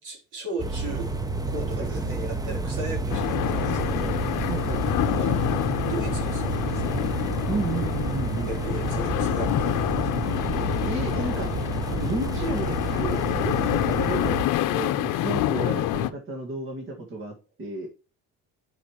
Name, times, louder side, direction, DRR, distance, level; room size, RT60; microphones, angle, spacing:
voice 1, 0.0-1.1 1.5-4.2 5.1-5.4 5.8-7.0 8.4-10.2, right 2 dB, 65° right, 3.7 m, -36 dB
sound 1, 0.6-14.5, right 2 dB, 10° right, 0.7 m, -29 dB
sound 2, 3.1-16.1, left 14 dB, 70° left, 0.7 m, -27 dB
voice 2, 4.5-5.2 7.5-8.5 10.8-11.5 11.9-17.9, right 2 dB, 40° right, 2.0 m, -33 dB
9.8 x 5.5 x 3.1 m
cardioid pair, 130°, 33 cm